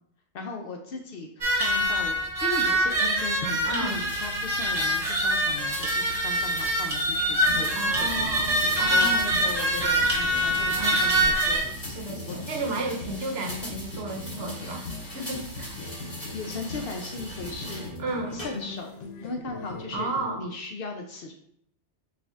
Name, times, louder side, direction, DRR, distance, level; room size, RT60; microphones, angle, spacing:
voice 1, 0.3-1.3 1.6-8.4 8.8-11.6 12.3-12.4 16.3-17.9 18.3-18.9 19.2-20.1 20.4-21.3, left 3 dB, 60° left, 3 dB, 0.7 m, -37 dB
sound 1, 1.4-11.6, right 1 dB, 35° right, 1.0 m, -24 dB
voice 2, 3.6-4.0 7.8-9.3 10.8-11.0 11.8-15.8 18.0-18.4 19.9-20.4, right 2 dB, 65° right, 2 dB, 0.9 m, -33 dB
sound 2, 3.9-17.9 18.4-18.9, equal, 30° left, 1.6 m, -40 dB
sound 3, 7.4-20.4, left 3 dB, 85° left, 1.0 m, -41 dB
6.3 x 2.5 x 2.4 m, 0.68 s
omnidirectional pair, 1.2 m